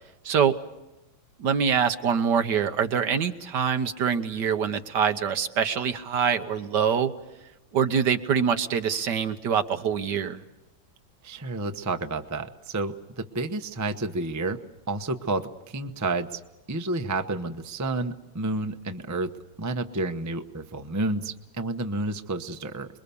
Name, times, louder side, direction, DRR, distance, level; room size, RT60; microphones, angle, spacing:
voice 1, 1.4-7.1 7.7-10.4, right 7 dB, 65° right, 8 dB, 1.6 m, -24 dB
voice 2, 11.2-14.6 14.9-16.4 16.7-19.3 19.6-22.9, right 2 dB, 20° right, 6 dB, 0.4 m, -30 dB
26.5 x 22.0 x 7.0 m, 0.98 s
omnidirectional pair, 2.1 m